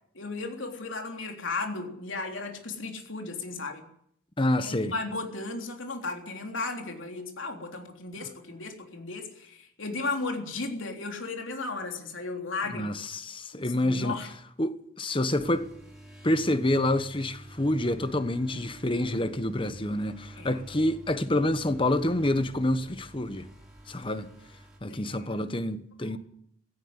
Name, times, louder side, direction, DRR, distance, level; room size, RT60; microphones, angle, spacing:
voice 1, 0.1-3.8 4.6-12.9 13.5-14.3 20.4-20.6 24.9-25.3, left 3 dB, 80° left, 3.5 m, -35 dB
voice 2, 4.4-4.9 8.2-8.3 12.7-14.2 14.6-15.6 16.2-23.5 23.9-24.3 24.8-26.2, left 1 dB, 25° left, 1.2 m, -27 dB
sound 1, 15.4-24.8, right 1 dB, ahead, 5.1 m, -49 dB
16.5 x 16.0 x 9.7 m
head